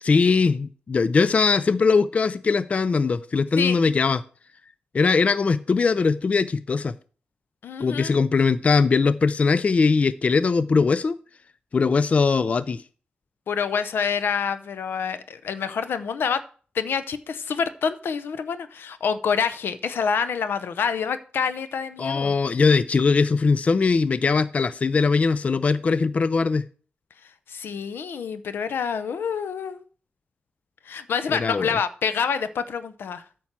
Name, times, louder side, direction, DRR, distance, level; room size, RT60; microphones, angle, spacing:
voice 1, 0.0-4.2 4.9-6.9 7.8-11.2 11.7-12.8 22.0-26.7 31.3-31.8, left 4 dB, 40° left, 0.3 m, -21 dB
voice 2, 7.6-8.1 13.5-16.4 16.7-22.3 27.5-29.8 30.9-33.2, left 6 dB, 85° left, 0.7 m, -27 dB
9.0 x 4.5 x 7.3 m
wide cardioid pair, 120°, 4 cm